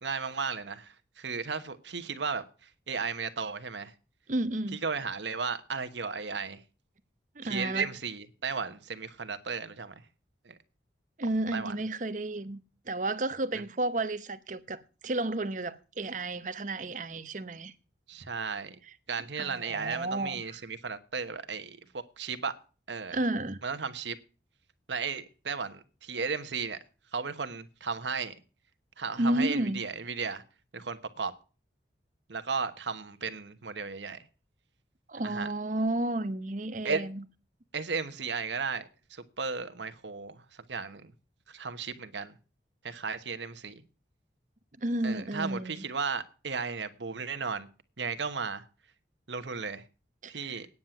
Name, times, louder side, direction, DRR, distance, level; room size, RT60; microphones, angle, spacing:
voice 1, 0.0-3.9 4.8-6.6 7.4-9.9 10.4-10.6 11.5-11.7 18.1-18.8 19.1-22.6 22.9-23.2 23.6-24.2 24.9-26.8 27.1-28.3 29.0-30.4 30.7-31.3 32.3-34.2 35.2-35.5 36.8-37.0 37.7-41.1 41.5-42.3 42.8-43.8 45.0-47.7 48.0-48.6 49.3-49.8 50.3-50.7, right 5 dB, 90° right, 1.2 m, -35 dB
voice 2, 4.3-4.8 7.4-7.9 11.2-12.6 12.9-17.7 19.4-20.6 23.1-23.6 29.2-29.8 35.1-37.2 44.8-45.8 50.2-50.5, right 1 dB, 45° right, 0.8 m, -32 dB
9.5 x 7.4 x 9.1 m
head